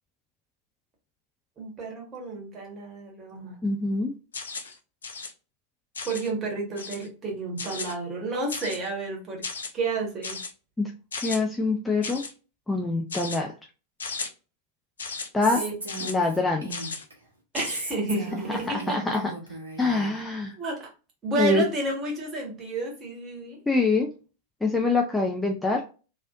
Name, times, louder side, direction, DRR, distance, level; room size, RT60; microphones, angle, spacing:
voice 1, 1.6-3.6 6.0-9.5 9.7-10.4 15.5-15.7 17.5-19.0 20.6-20.9 21.2-23.6, right 2 dB, 25° right, 1.5 m, -31 dB
voice 2, 3.6-4.1 10.8-10.9 11.2-12.2 12.7-13.5 15.3-15.6 16.0-16.7 18.9-19.3 19.8-20.6 21.4-21.6 23.7-24.1 24.6-25.8, left 3 dB, 10° left, 0.5 m, -24 dB
sound 1, 4.3-4.7 5.0-5.3 5.9-6.3 6.8-7.1 7.6-7.9 8.5-8.9 9.4-9.7 10.2-10.5 11.1-11.4 12.0-12.3 13.1-13.4 14.0-14.3 15.0-15.3 15.9-16.1 16.7-17.0 17.5-17.8, left 4 dB, 70° left, 0.6 m, -35 dB
Female speech woman speaking, 15.4-17.1 17.6-20.1, right 3 dB, 75° right, 1.1 m, -37 dB
3.1 x 3.0 x 2.5 m
figure-of-eight pair, 90°, 0 cm